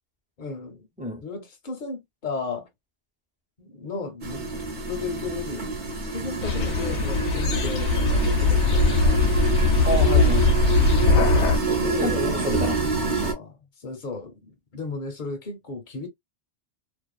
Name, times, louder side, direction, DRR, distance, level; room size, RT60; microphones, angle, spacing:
voice 1, 0.4-0.9 1.2-2.7 3.6-4.4 4.9-9.3 11.8-12.5 13.2-13.5 13.8-16.1, left 4 dB, 45° left, 0.8 m, -34 dB
sound 1, 4.2-13.3, right 4 dB, 45° right, 0.9 m, -27 dB
sound 2, 6.4-11.6, left 3 dB, 85° left, 0.9 m, -20 dB
voice 2, 9.8-10.6 11.7-13.2, left 1 dB, 10° right, 0.7 m, -30 dB
2.4 x 2.4 x 2.2 m
omnidirectional pair, 1.2 m